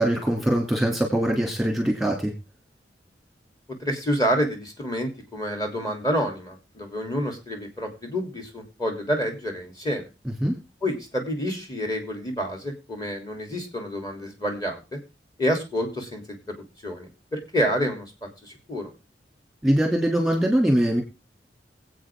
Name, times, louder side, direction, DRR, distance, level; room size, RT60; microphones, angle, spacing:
voice 1, 0.0-2.3 10.4-10.5 19.6-21.0, right 1 dB, ahead, 1 dB, 2.8 m, -22 dB
voice 2, 3.8-10.0 10.8-15.0 15.4-16.4 16.8-18.0 18.4-18.9, equal, 20° left, 3 dB, 3.3 m, -28 dB
23.5 x 8.4 x 3.7 m, 0.29 s
head